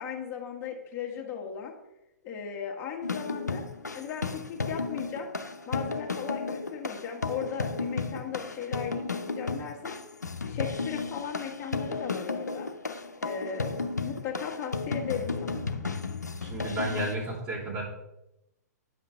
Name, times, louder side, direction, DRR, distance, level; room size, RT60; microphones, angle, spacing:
voice 1, 0.0-1.7 2.2-3.6 3.9-5.3 5.7-9.9 10.5-12.7 13.2-15.8, left 7 dB, 25° left, 0 dB, 1.6 m, -37 dB
sound 1, 3.0-17.2, left 4 dB, 85° left, 0.7 m, -33 dB
voice 2, 16.4-17.8, right 1 dB, 30° right, -7 dB, 2.8 m, -32 dB
9.4 x 5.6 x 3.5 m, 0.88 s
figure-of-eight pair, 115°, 9 cm